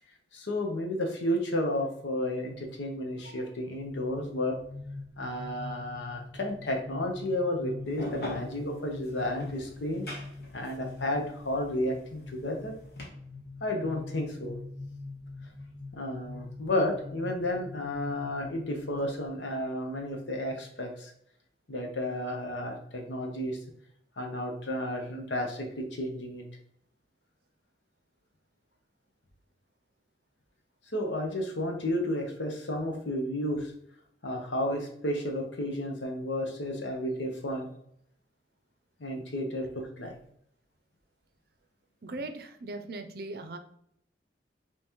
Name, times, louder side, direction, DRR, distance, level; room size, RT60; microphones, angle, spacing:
voice 1, 0.3-4.6 5.2-10.1 10.5-12.7 13.6-14.5 15.9-21.1 21.7-23.6 24.2-26.4 30.9-33.7 34.2-37.7 39.0-40.2, left 1 dB, 85° left, 3 dB, 1.0 m, -32 dB
sound 1, 3.7-19.3, left 3 dB, 40° left, 1.6 m, -44 dB
sound 2, 7.8-13.1, left 1 dB, 60° left, 1.2 m, -40 dB
voice 2, 42.0-43.6, right 2 dB, 55° right, 8 dB, 0.5 m, -39 dB
5.5 x 3.2 x 3.1 m, 0.69 s
head